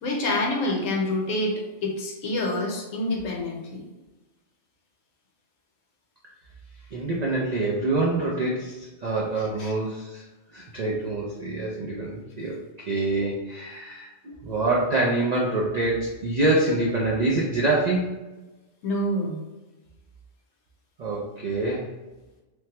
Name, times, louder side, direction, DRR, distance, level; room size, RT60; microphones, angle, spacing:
voice 1, 0.0-3.8 9.6-9.7 18.8-19.4, left 1 dB, 70° left, -1 dB, 1.1 m, -27 dB
voice 2, 6.9-10.2 10.5-12.6 12.9-14.1 14.4-18.2 21.0-21.9, right 2 dB, 85° right, -4 dB, 0.3 m, -25 dB
3.3 x 2.1 x 2.8 m, 1.1 s
omnidirectional pair, 1.4 m